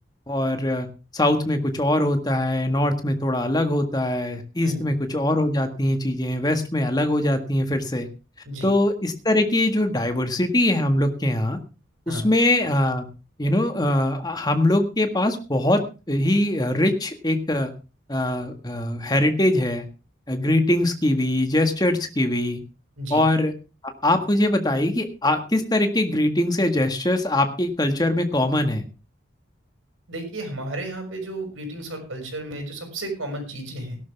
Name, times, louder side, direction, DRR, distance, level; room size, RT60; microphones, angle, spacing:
voice 1, 0.3-0.9 1.1-8.1 8.6-11.6 12.1-13.1 13.4-15.8 16.1-17.7 18.1-19.9 20.3-22.6 23.1-23.5 23.8-28.9, left 1 dB, 20° left, 6 dB, 1.7 m, -22 dB
voice 2, 30.1-34.0, right 1 dB, 90° right, 5 dB, 6.1 m, -33 dB
17.5 x 12.0 x 3.5 m, 0.31 s
head